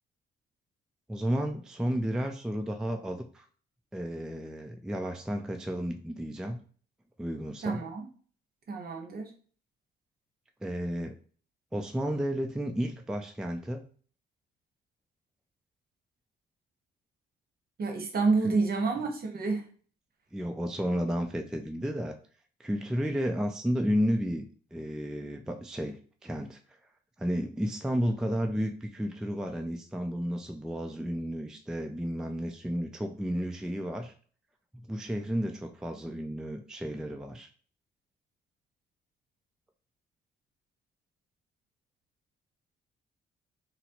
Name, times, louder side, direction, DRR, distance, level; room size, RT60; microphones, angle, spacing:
voice 1, 1.1-3.4 3.9-6.6 7.2-7.8 10.6-11.1 11.7-13.8 18.4-18.6 20.3-22.2 22.6-24.4 24.7-26.6 27.2-34.1 34.9-37.5, equal, 5° right, 5 dB, 0.3 m, -32 dB
voice 2, 7.6-8.0 8.7-9.3 17.8-19.6, right 4 dB, 50° right, 3 dB, 0.9 m, -28 dB
4.1 x 2.0 x 2.8 m, 0.43 s
cardioid pair, 90°, 20 cm